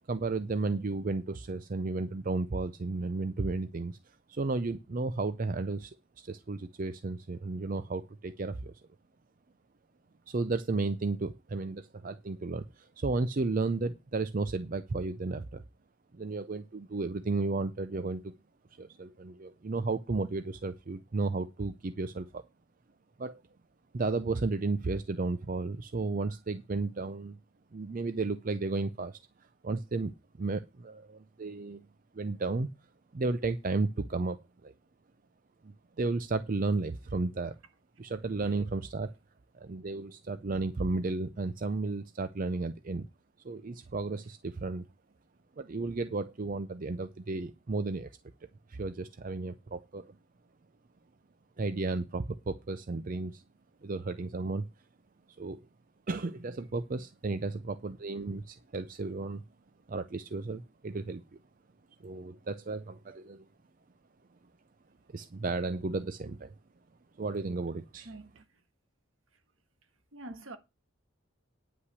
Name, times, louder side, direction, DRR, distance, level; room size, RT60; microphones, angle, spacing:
voice 1, 0.1-5.9 6.2-8.8 10.3-15.6 16.1-18.3 18.7-22.4 23.2-23.4 23.9-27.4 27.7-29.2 29.6-31.8 32.1-32.7 33.1-34.7 35.6-37.6 38.0-39.1 39.5-43.1 43.4-44.9 45.6-48.1 48.7-50.1 51.6-53.4 53.8-54.7 55.4-55.7 56.1-59.4 59.9-61.2 62.0-63.4 65.1-66.5 67.2-68.1, right 3 dB, 40° right, 0.5 m, -33 dB
voice 2, 67.9-68.6 69.3-69.4 69.8-70.6, right 2 dB, 65° right, 1.4 m, -48 dB
9.7 x 5.7 x 8.2 m
head